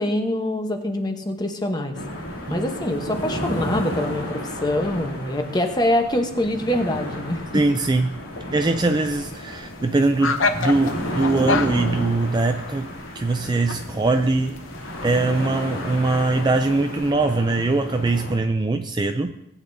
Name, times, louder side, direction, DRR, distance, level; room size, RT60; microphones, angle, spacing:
voice 1, 0.0-2.0 2.5-7.6, left 1 dB, 20° left, 5 dB, 0.9 m, -24 dB
sound 1, 1.9-18.4, equal, 80° left, 2.5 m, -32 dB
voice 2, 7.5-8.2 8.5-12.9 13.1-14.6 15.0-19.4, right 3 dB, 20° right, 7 dB, 0.3 m, -22 dB
sound 2, 8.9-17.1, left 4 dB, 60° left, 0.7 m, -31 dB
18.5 x 8.7 x 2.7 m, 0.83 s
head